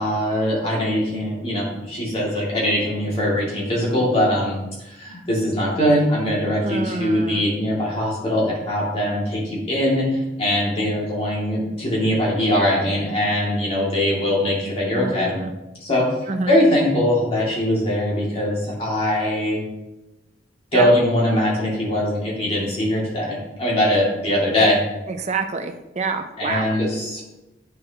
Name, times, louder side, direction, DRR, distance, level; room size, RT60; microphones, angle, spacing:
voice 1, 0.0-4.6 4.8-15.3 15.8-19.6 20.7-24.8 26.4-27.2, left 1 dB, 35° left, -5 dB, 2.4 m, -21 dB
voice 2, 6.6-7.4 14.9-15.5 16.3-16.6 20.7-20.9 25.1-26.8, right 4 dB, 40° right, 6 dB, 0.6 m, -27 dB
8.8 x 6.2 x 2.9 m, 0.98 s
head